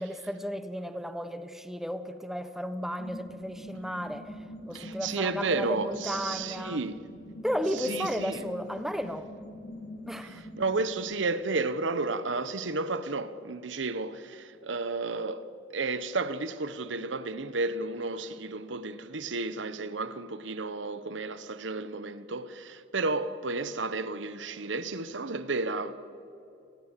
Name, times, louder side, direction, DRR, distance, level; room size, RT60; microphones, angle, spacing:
voice 1, 0.0-4.4 4.7-6.8 7.4-9.3 10.1-10.4, equal, ahead, 1.0 m, -34 dB
sound 1, 3.0-10.9, left 1 dB, 65° left, 4.0 m, -44 dB
voice 2, 4.7-7.0 7.7-8.4 10.2-25.9, right 3 dB, 85° right, 1.0 m, -32 dB
29.5 x 19.5 x 7.4 m
head